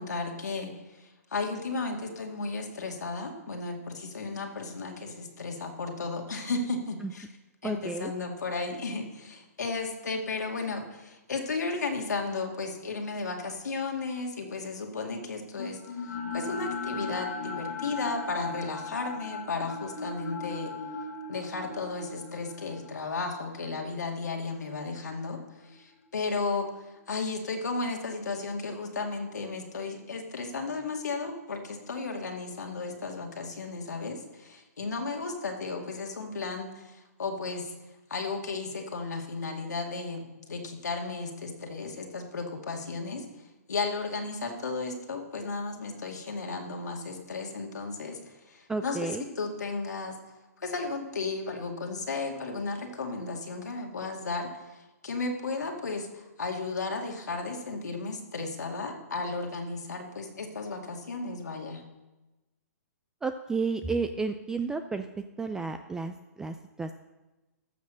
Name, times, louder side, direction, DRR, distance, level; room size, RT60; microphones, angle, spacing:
voice 1, 0.0-7.3 7.6-20.7 21.3-37.7 38.1-50.2 50.6-61.8, left 3 dB, 90° left, 2 dB, 2.2 m, -34 dB
voice 2, 7.6-8.1 48.7-49.2 63.2-65.1 65.4-67.0, right 4 dB, 5° right, 8 dB, 0.3 m, -32 dB
sound 1, 15.6-25.7, left 4 dB, 60° left, 1.6 m, -38 dB
14.0 x 6.3 x 6.3 m, 1.1 s
hypercardioid pair, 145°, 9 cm